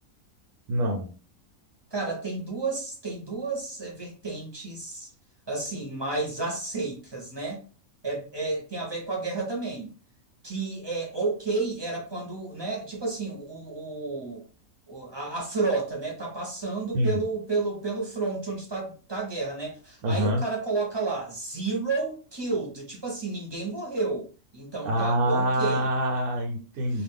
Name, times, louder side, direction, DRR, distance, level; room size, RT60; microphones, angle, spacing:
voice 1, 0.7-1.1 16.9-17.2 20.0-20.4 24.8-27.0, equal, 90° right, 1.2 m, -25 dB
voice 2, 1.9-5.1 5.5-7.6 8.0-9.9 10.4-14.4 14.9-25.9 26.9-27.0, right 3 dB, 25° right, 0.7 m, -31 dB
2.5 x 2.4 x 3.5 m
omnidirectional pair, 1.5 m